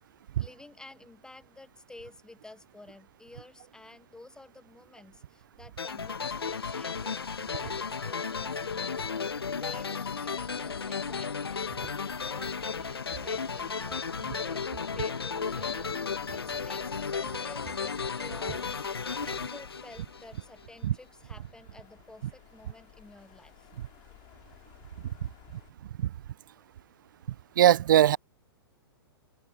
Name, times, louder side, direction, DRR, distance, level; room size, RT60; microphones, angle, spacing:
voice 1, 0.4-9.0 9.5-11.7 12.3-18.7 19.2-23.7, left 2 dB, 5° left, 1.9 m, -51 dB
sound 1, 5.8-20.6, left 5 dB, 75° left, 1.9 m, -34 dB
sound 2, 5.9-25.7, left 24 dB, 35° left, 5.1 m, -58 dB
sound 3, 11.7-17.4 17.6-20.6, right 26 dB, 35° right, 4.7 m, -52 dB
voice 2, 27.6-28.2, right 11 dB, 55° right, 0.4 m, -20 dB
open air
figure-of-eight pair, 105°, 13 cm